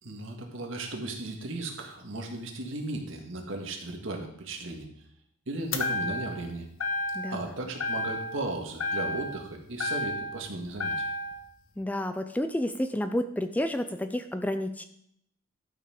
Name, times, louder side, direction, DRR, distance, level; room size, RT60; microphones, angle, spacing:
voice 1, 0.0-4.9 5.5-6.7 7.3-11.1, right 2 dB, 70° right, 2 dB, 1.7 m, -36 dB
sound 1, 5.7-6.5 6.8-7.5 7.8-8.5 8.8-10.4 10.8-11.4, left 2 dB, 80° left, 1.1 m, -31 dB
voice 2, 7.1-7.5 11.8-14.8, left 1 dB, 10° left, 9 dB, 0.4 m, -30 dB
12.0 x 5.7 x 4.9 m, 0.73 s
head